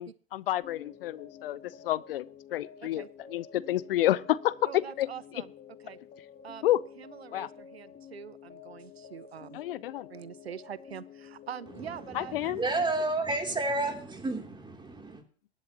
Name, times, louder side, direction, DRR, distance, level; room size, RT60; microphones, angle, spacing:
voice 1, 0.0-1.6 1.8-2.2 2.5-5.1 6.6-6.8 7.3-7.5 9.5-10.1 12.1-12.6, left 14 dB, 65° left, 0.7 m, -29 dB
sound 1, 0.6-12.3, left 7 dB, 30° left, 2.6 m, -50 dB
voice 2, 4.6-5.5 5.8-6.0 6.4-6.7 7.0-9.6 10.1-12.6, right 8 dB, 80° right, 0.7 m, -44 dB
voice 3, 11.7-15.2, right 2 dB, 15° right, 3.0 m, -31 dB
23.0 x 11.5 x 2.9 m
figure-of-eight pair, 85°, 31 cm